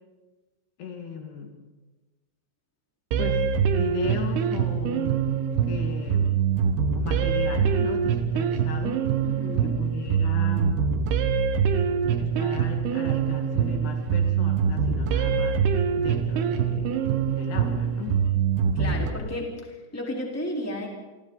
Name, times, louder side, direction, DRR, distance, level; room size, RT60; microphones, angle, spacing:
voice 1, 0.8-1.5 3.2-3.4 3.7-5.2 5.6-6.4 6.9-9.0 9.6-10.9 12.2-15.6 16.0-17.0 17.3-18.2, left 6 dB, 65° left, 3 dB, 3.7 m, -36 dB
sound 1, 3.1-19.1, right 7 dB, 70° right, 3.0 m, -24 dB
voice 2, 9.2-9.8 18.7-20.9, left 1 dB, 5° left, -1 dB, 3.3 m, -33 dB
30.0 x 24.5 x 4.0 m, 1.2 s
omnidirectional pair, 5.3 m